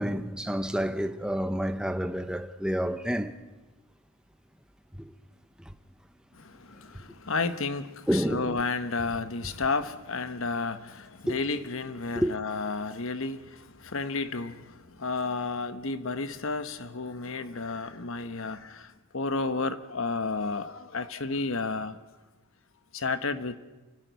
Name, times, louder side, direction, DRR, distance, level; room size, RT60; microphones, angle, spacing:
voice 1, 0.0-3.4 8.1-8.6 11.3-11.4 12.2-12.3, equal, 5° right, 0.9 m, -29 dB
voice 2, 6.3-22.0 22.9-23.6, left 3 dB, 65° left, 1.2 m, -32 dB
29.5 x 12.0 x 9.4 m
head